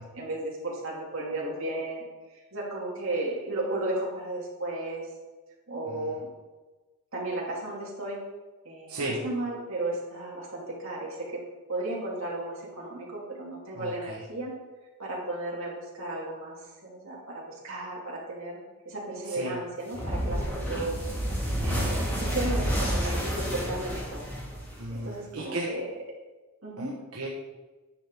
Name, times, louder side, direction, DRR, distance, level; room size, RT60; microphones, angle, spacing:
voice 1, 0.1-2.0 2.5-5.1 5.7-6.3 7.1-8.2 8.6-11.4 11.7-14.5 15.0-16.6 16.8-18.5 18.8-21.0 21.6-24.3 24.9-25.9 26.6-26.9, right 2 dB, 60° right, -4 dB, 2.4 m, -34 dB
voice 2, 8.9-9.2 13.7-14.2 19.2-19.6 24.8-25.7 26.8-27.3, right 1 dB, 85° right, -4 dB, 1.2 m, -35 dB
sound 1, 19.9-25.1, equal, 10° left, 1.7 m, -29 dB
9.9 x 5.8 x 3.6 m, 1.2 s
head